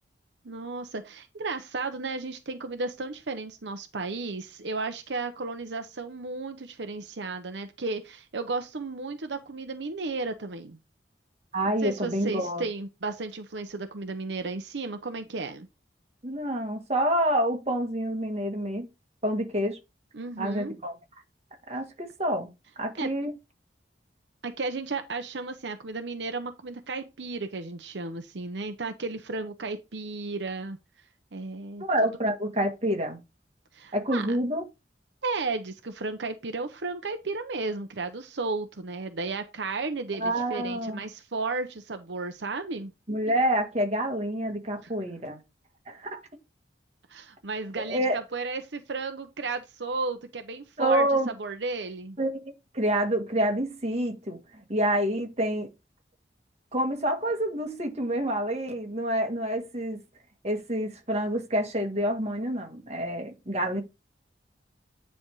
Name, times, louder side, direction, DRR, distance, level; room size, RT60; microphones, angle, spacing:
voice 1, 0.4-10.8 11.8-15.7 20.1-20.8 23.0-23.1 24.4-30.8 31.3-31.8 33.7-34.4 35.2-42.9 44.8-44.9 47.1-51.1 51.4-52.2, right 3 dB, 80° right, 0.8 m, -34 dB
voice 2, 11.5-12.6 16.2-18.9 19.2-19.8 20.4-20.9 21.7-22.5 22.8-23.3 31.8-33.2 33.9-34.6 40.2-41.0 43.1-45.4 45.9-46.2 47.9-48.2 50.8-51.3 52.2-52.4 52.7-54.4 54.7-55.7 56.7-60.0 60.4-63.8, right 1 dB, 35° right, 1.7 m, -27 dB
9.9 x 3.5 x 4.7 m
head